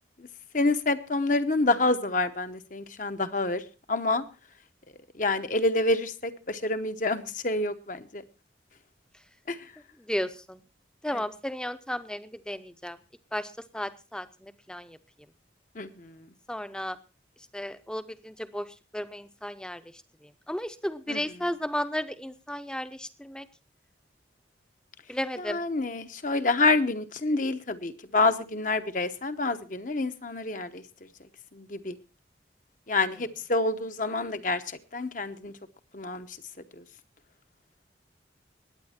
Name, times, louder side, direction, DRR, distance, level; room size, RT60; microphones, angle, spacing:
voice 1, 0.5-3.6 3.9-4.2 5.2-8.2 9.5-9.6 15.8-16.1 21.1-21.2 25.5-30.8 31.5-32.0 32.9-34.6 34.9-35.5 35.9-36.3 36.8-36.9, left 2 dB, 45° left, 9 dB, 0.9 m, -27 dB
voice 2, 10.1-10.6 11.0-13.0 13.3-15.0 16.5-17.0 17.5-19.8 20.2-23.5 25.1-25.6, equal, 5° left, 12 dB, 0.7 m, -34 dB
21.0 x 9.2 x 4.3 m, 0.32 s
head